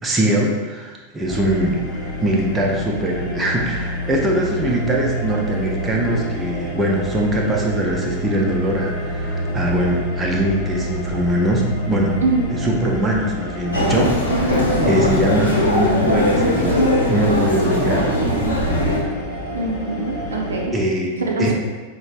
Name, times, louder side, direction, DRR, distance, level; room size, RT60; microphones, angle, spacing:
voice 1, 0.0-12.2 12.5-16.8 17.1-18.1 20.7-21.5, equal, 15° right, -1 dB, 0.5 m, -22 dB
sound 1, 1.3-20.7, equal, 40° left, 0.7 m, -28 dB
voice 2, 12.2-12.5 14.8-15.0 19.5-20.7 21.2-21.5, right 3 dB, 70° right, -1 dB, 0.5 m, -23 dB
Human voice, 13.7-19.0, left 1 dB, 80° left, 0.7 m, -19 dB
5.0 x 2.0 x 2.4 m, 1.3 s
figure-of-eight pair, 90°, 0 cm